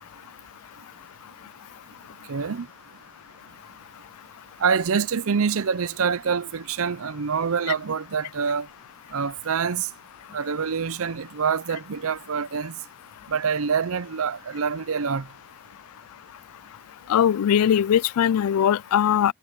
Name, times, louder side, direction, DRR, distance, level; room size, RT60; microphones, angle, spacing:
voice 1, 2.3-2.7 4.6-8.7 9.1-9.9 10.3-12.7 13.3-15.2, right 6 dB, 65° right, 0.6 m, -26 dB
voice 2, 17.1-19.3, left 9 dB, 75° left, 0.3 m, -20 dB
head